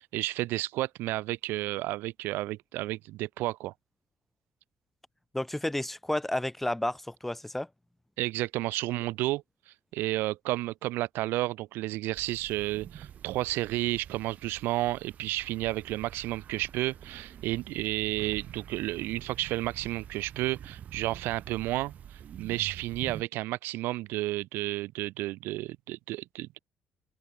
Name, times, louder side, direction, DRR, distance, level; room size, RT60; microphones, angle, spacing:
voice 1, 0.0-3.7 8.2-9.4 9.9-26.6, right 17 dB, 85° right, 0.4 m, -32 dB
voice 2, 5.3-7.7, left 1 dB, 5° left, 0.8 m, -31 dB
sound 1, 12.1-23.2, right 9 dB, 45° right, 1.0 m, -46 dB
open air
cardioid pair, 150°, 4 cm